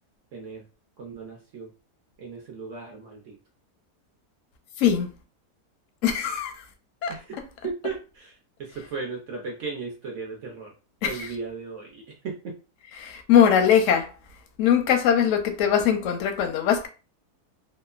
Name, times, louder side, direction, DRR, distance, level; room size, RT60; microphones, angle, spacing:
voice 1, 0.3-0.6 1.0-1.7 2.2-3.4 7.1-7.4 7.6-10.7 11.0-12.5, right 4 dB, 65° right, 0.8 m, -36 dB
voice 2, 4.8-5.1 6.0-6.5 7.0-7.1 11.0-11.3 13.0-14.1 14.6-16.9, left 8 dB, 70° left, 0.8 m, -21 dB
2.8 x 2.1 x 2.3 m
omnidirectional pair, 1.7 m